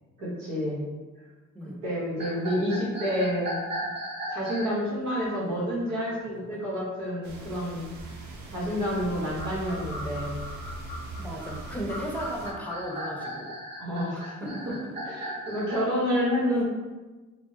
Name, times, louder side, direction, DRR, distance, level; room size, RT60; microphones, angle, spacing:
voice 1, 0.2-0.8 1.8-3.5 4.3-7.9 8.5-10.4 13.8-14.5 15.0-16.6, equal, 90° right, -7 dB, 1.2 m, -29 dB
sound 1, 2.2-4.8 9.1-15.8, equal, 35° right, 1.4 m, -37 dB
sound 2, 7.2-12.5, right 2 dB, 75° right, 0.6 m, -40 dB
voice 2, 11.2-13.5 14.1-14.8 15.9-16.0 16.5-16.6, equal, 5° left, -2 dB, 0.6 m, -36 dB
3.5 x 2.1 x 2.8 m, 1.2 s
cardioid pair, 90°, 30 cm